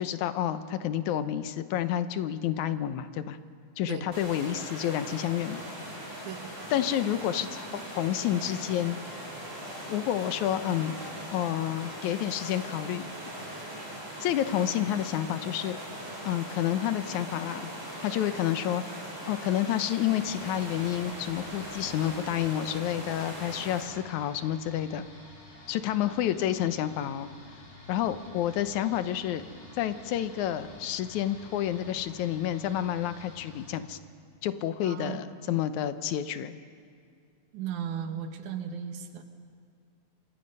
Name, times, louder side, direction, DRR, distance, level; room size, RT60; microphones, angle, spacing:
voice 1, 0.0-3.4 3.8-5.6 6.7-9.2 9.9-11.0 11.3-13.1 14.2-15.8 16.2-17.7 18.0-18.8 19.3-25.1 25.7-27.3 27.9-29.4 29.8-34.0 34.4-36.5, left 11 dB, 80° left, 11 dB, 2.3 m, -29 dB
sound 1, 4.1-23.8, right 1 dB, 20° right, 5.9 m, -40 dB
sound 2, 20.2-33.8, left 2 dB, 65° left, 5.7 m, -50 dB
voice 2, 34.8-35.6 37.5-39.2, right 8 dB, 85° right, 7 dB, 2.8 m, -36 dB
27.0 x 25.0 x 5.5 m, 2.2 s
omnidirectional pair, 3.3 m